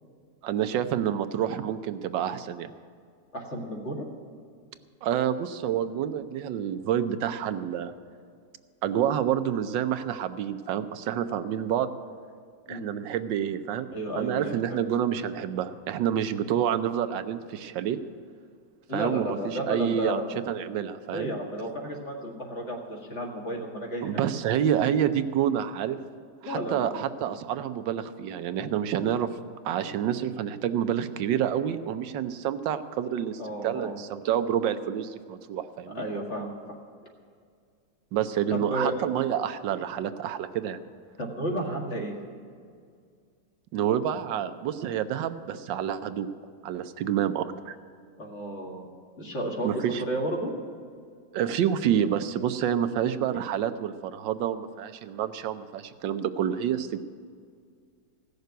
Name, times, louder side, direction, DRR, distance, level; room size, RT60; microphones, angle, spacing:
voice 1, 0.4-2.7 5.0-7.9 8.8-11.9 12.7-13.9 14.2-18.0 18.9-21.3 24.0-26.0 26.4-29.3 29.6-36.0 38.1-40.8 43.7-46.3 46.6-47.8 49.6-50.0 51.3-57.0, right 9 dB, 80° right, 10 dB, 1.4 m, -28 dB
voice 2, 3.3-4.1 12.7-12.9 13.9-14.8 18.9-20.2 21.1-24.1 26.4-26.9 33.4-34.0 35.9-36.5 38.5-38.9 41.2-42.2 48.2-48.9 49.2-50.5, right 1 dB, 40° left, 0 dB, 2.1 m, -32 dB
16.0 x 6.7 x 9.3 m, 2.2 s
omnidirectional pair, 2.0 m